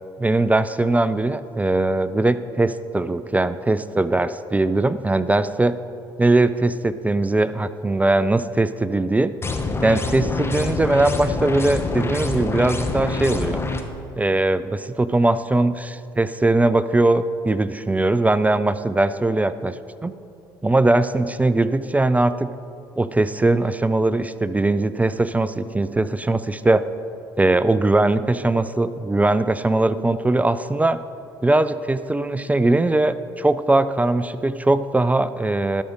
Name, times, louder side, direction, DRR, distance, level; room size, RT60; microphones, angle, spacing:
voice 1, 0.2-5.8 6.2-9.3 9.8-13.6 14.2-20.1 20.6-22.5 23.0-26.8 27.4-31.0 31.4-35.8, right 2 dB, 10° right, 14 dB, 0.4 m, -20 dB
sound 1, 9.4-13.8, left 3 dB, 20° left, 1.0 m, -26 dB
12.0 x 6.4 x 5.1 m, 2.6 s
hypercardioid pair, 60°, 12 cm